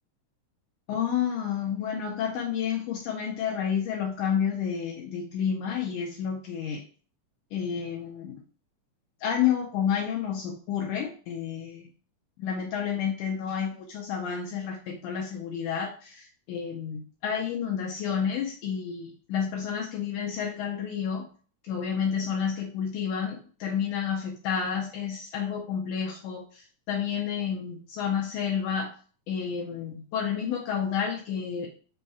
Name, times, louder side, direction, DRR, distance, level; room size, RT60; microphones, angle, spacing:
voice 1, 0.9-6.8 7.5-8.4 9.2-11.9 12.4-21.3 21.7-28.9 29.3-31.7, left 7 dB, 80° left, 0 dB, 1.9 m, -30 dB
5.4 x 2.3 x 4.1 m, 0.40 s
omnidirectional pair, 4.0 m